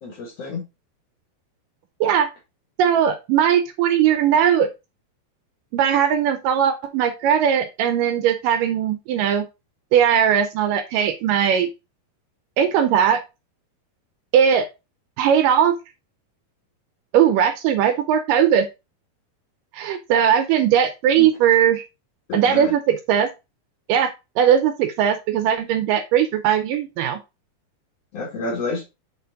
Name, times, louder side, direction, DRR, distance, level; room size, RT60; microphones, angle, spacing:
voice 1, 0.0-0.6 21.1-21.3 22.3-22.7 28.1-28.8, left 3 dB, 55° left, 0 dB, 1.9 m, -29 dB
voice 2, 2.8-4.7 5.7-9.5 9.9-11.7 12.6-13.2 14.3-14.7 15.2-15.8 17.1-18.7 19.7-21.8 22.3-23.3 23.9-24.1 24.4-27.2, right 9 dB, 80° right, 9 dB, 2.1 m, -19 dB
6.8 x 4.1 x 3.8 m, 0.25 s
omnidirectional pair, 4.3 m